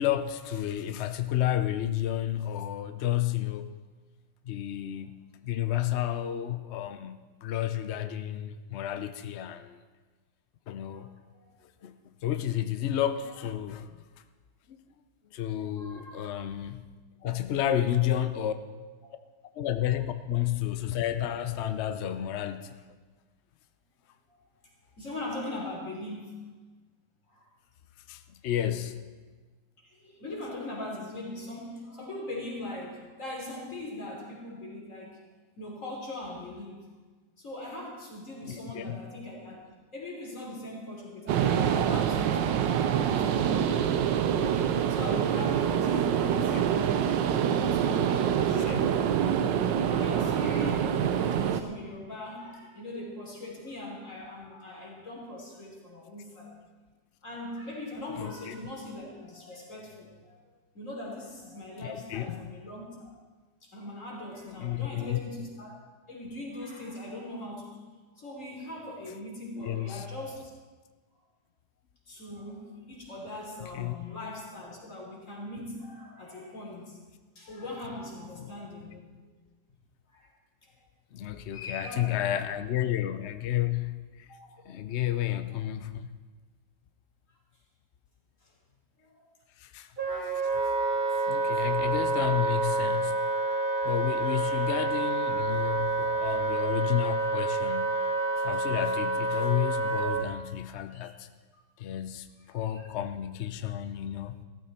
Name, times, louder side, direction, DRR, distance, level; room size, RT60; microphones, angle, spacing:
voice 1, 0.0-3.7 4.4-5.1 5.4-9.8 10.7-11.1 11.8-14.1 14.7-14.8 15.3-16.8 17.2-18.5 19.5-22.8 28.1-29.1 38.4-39.0 46.3-46.6 48.6-48.9 51.4-51.5 58.1-58.6 61.8-62.4 64.5-65.2 69.5-70.1 73.6-73.9 78.4-78.5 78.9-79.0 81.1-84.3 84.7-86.1 89.6-89.9 90.2-90.5 91.3-93.2 93.8-98.1 98.4-101.3 101.8-104.3, left 12 dB, 75° left, 10 dB, 0.6 m, -31 dB
voice 2, 15.8-16.5 17.2-17.4 24.3-24.4 25.0-26.4 27.3-27.5 29.8-35.2 35.6-36.9 37.4-39.7 39.9-44.4 44.9-46.6 47.1-49.3 49.8-56.6 57.2-60.3 60.7-63.1 63.6-65.8 66.1-67.8 68.1-70.5 72.1-77.0 77.4-79.3 80.1-80.3 80.6-80.7 81.5-82.7 84.3-84.6 87.3-87.4 88.4-88.5 89.0-89.3 90.9-91.1 94.3-94.9 100.9-101.0 102.4-102.9, left 1 dB, 45° left, -2 dB, 3.6 m, -41 dB
sound 1, 41.3-51.6, right 9 dB, 80° right, 1.4 m, -26 dB
Wind instrument woodwind instrument, 90.0-100.3, right 2 dB, 30° right, 1.2 m, -28 dB
16.0 x 13.5 x 4.3 m, 1.3 s
omnidirectional pair, 2.0 m